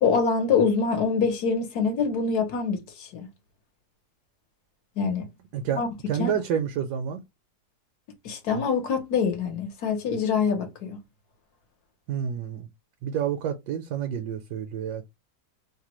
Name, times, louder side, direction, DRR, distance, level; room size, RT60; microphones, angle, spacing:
voice 1, 0.0-3.3 5.0-5.3 5.7-5.9 6.2-6.3 8.2-11.0, left 5 dB, 70° left, 1.4 m, -25 dB
voice 2, 5.5-7.2 12.1-12.7 13.0-15.0, right 8 dB, 75° right, 1.1 m, -29 dB
3.2 x 2.1 x 2.9 m
omnidirectional pair, 1.8 m